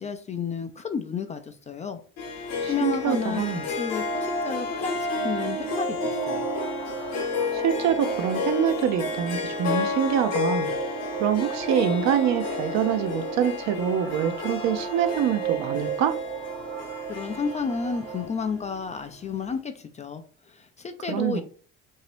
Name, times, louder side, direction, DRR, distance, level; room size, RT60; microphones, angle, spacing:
voice 1, 0.0-2.0 2.3-3.4 3.7-6.5 17.1-21.4, left 5 dB, 20° left, 8 dB, 0.4 m, -31 dB
Harp, 2.2-19.0, left 3 dB, 55° left, 1.0 m, -31 dB
voice 2, 2.6-3.6 7.5-10.7 11.2-16.2 21.1-21.4, right 8 dB, 60° right, 9 dB, 0.6 m, -25 dB
sound 1, 4.7-18.3, right 6 dB, 80° right, 1.2 m, -36 dB
2.8 x 2.7 x 3.1 m, 0.42 s
supercardioid pair, 75°, 32 cm